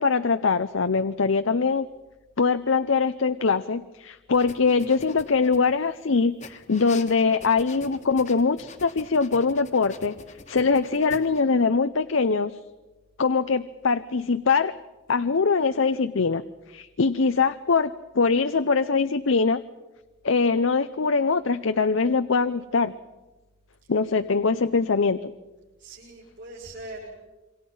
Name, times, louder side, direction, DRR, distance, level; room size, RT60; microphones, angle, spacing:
voice 1, 0.0-1.9 2.4-10.1 10.5-12.6 13.2-14.7 15.1-16.4 16.7-19.6 20.2-22.9 23.9-25.3, left 4 dB, 75° left, 11 dB, 0.7 m, -22 dB
sound 1, 4.3-5.9 6.4-11.4, left 3 dB, 35° left, 1.5 m, -45 dB
voice 2, 25.8-27.1, right 2 dB, 65° right, -7 dB, 7.9 m, -41 dB
28.0 x 24.5 x 5.6 m, 1.1 s
head